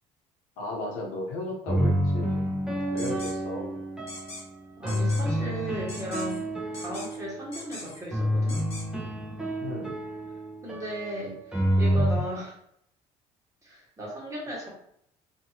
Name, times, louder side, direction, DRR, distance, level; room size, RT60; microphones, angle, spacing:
voice 1, 0.6-2.5 2.9-3.8 9.6-10.0, left 2 dB, 85° left, -1 dB, 0.8 m, -35 dB
sound 1, 1.7-4.3 4.8-7.5 8.1-12.2, equal, 5° right, 0.8 m, -28 dB
sound 2, 3.0-3.3 4.1-4.4 4.9-5.2 5.9-6.4 6.7-7.2 7.5-8.0 8.5-8.8, left 2 dB, 50° left, 1.1 m, -41 dB
voice 2, 4.8-6.4 6.7-8.6 10.6-12.6 13.6-14.7, equal, 20° right, -4 dB, 1.4 m, -36 dB
2.7 x 2.6 x 2.8 m, 0.70 s
supercardioid pair, 85°, 14 cm